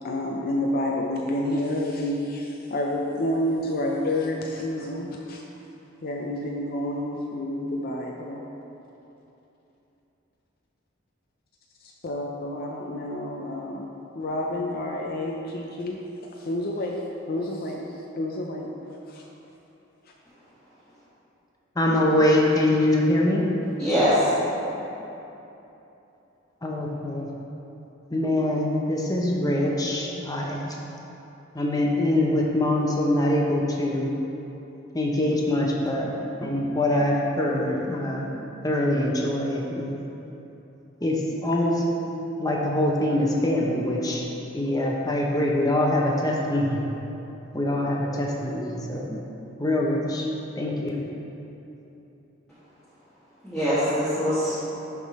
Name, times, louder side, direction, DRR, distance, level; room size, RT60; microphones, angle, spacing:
voice 1, 0.0-5.4 6.0-8.4 11.8-13.9 14.1-16.0 16.2-17.0 17.3-17.8 18.2-18.7 19.1-19.2 24.0-24.2, left 1 dB, 50° left, -1 dB, 0.5 m, -29 dB
voice 2, 21.8-23.5 26.6-27.3 28.1-30.8 31.5-34.1 34.9-36.1 36.4-38.3 38.6-39.9 41.0-41.8 42.4-44.2 44.5-46.8 47.5-49.2 49.6-50.2 50.6-51.0, left 1 dB, 20° left, -2 dB, 0.8 m, -24 dB
voice 3, 23.8-24.2 53.4-54.6, equal, ahead, -16 dB, 1.5 m, -23 dB
11.0 x 3.7 x 4.1 m, 3.0 s
head